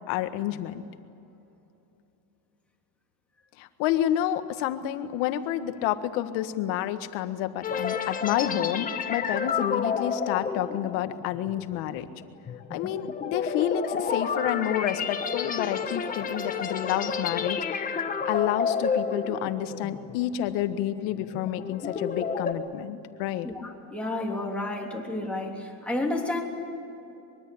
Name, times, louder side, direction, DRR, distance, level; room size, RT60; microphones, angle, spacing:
voice 1, 0.1-0.9 3.6-12.1 12.7-23.5, left 12 dB, 65° left, 9 dB, 1.7 m, -29 dB
sound 1, 7.6-20.1 20.5-20.7 21.2-22.5, left 6 dB, 20° left, 1.3 m, -30 dB
voice 2, 23.9-26.5, left 2 dB, 5° left, -2 dB, 3.2 m, -30 dB
24.0 x 23.0 x 8.7 m, 2.8 s
cardioid pair, 160°, 47 cm